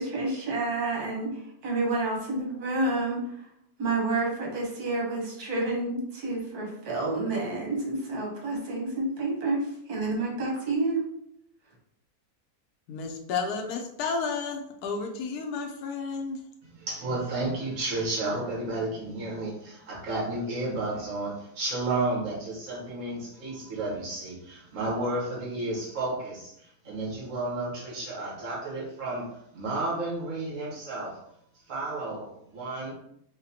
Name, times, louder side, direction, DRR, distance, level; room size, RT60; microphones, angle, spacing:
voice 1, 0.0-3.2 3.8-11.0, right 2 dB, 80° right, -1 dB, 1.5 m, -29 dB
voice 2, 12.9-16.4, left 5 dB, 85° left, 4 dB, 1.1 m, -32 dB
voice 3, 16.6-29.3 29.5-31.2 31.7-32.9, right 2 dB, 60° right, -4 dB, 1.6 m, -32 dB
4.8 x 2.2 x 2.8 m, 0.75 s
omnidirectional pair, 1.6 m